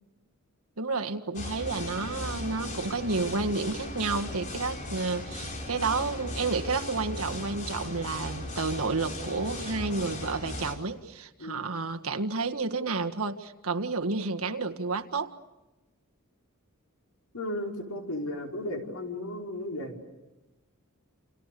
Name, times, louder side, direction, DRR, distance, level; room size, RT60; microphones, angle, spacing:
voice 1, 0.8-15.3, right 3 dB, 85° right, 5 dB, 1.8 m, -31 dB
sound 1, 1.3-10.7, left 1 dB, 35° left, 4.3 m, -37 dB
voice 2, 17.3-20.0, left 1 dB, 90° left, 1 dB, 5.2 m, -35 dB
29.5 x 28.5 x 6.9 m, 1.1 s
head